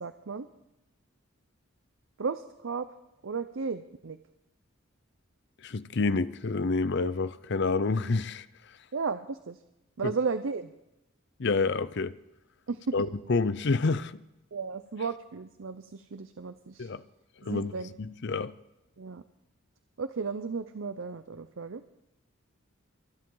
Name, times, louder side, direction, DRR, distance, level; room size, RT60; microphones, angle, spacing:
voice 1, 0.0-0.5 2.2-2.9 3.2-4.2 8.9-9.6 10.0-10.7 12.7-12.9 14.5-16.9 17.4-17.9 19.0-19.2 20.0-21.8, right 5 dB, 70° right, 0.6 m, -34 dB
voice 2, 5.6-8.5 10.0-10.1 11.4-12.1 12.9-14.2 16.8-17.0 17.4-17.7 18.0-18.5, left 3 dB, 55° left, 0.6 m, -28 dB
23.5 x 10.5 x 3.9 m
head